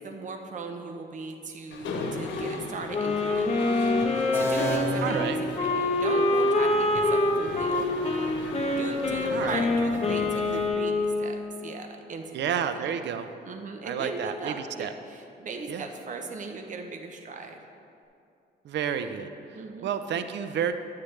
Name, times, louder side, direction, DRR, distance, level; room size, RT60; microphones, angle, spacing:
voice 1, 0.0-8.3 8.8-12.4 12.7-12.8 13.4-17.6 19.5-19.9, right 3 dB, 45° right, 4 dB, 0.8 m, -38 dB
Mechanisms, 1.7-10.7, left 3 dB, 85° left, 1.0 m, -36 dB
Wind instrument woodwind instrument, 2.9-11.4, left 2 dB, 35° left, 1.1 m, -25 dB
sound 1, 4.3-6.2, equal, 15° left, 1.8 m, -31 dB
voice 2, 5.0-5.4 9.3-9.6 12.3-13.3 13.8-14.9 15.7-15.9 18.6-20.7, right 8 dB, 75° right, 10 dB, 0.5 m, -30 dB
11.5 x 8.6 x 3.3 m, 2.6 s
cardioid pair, 90°, 18 cm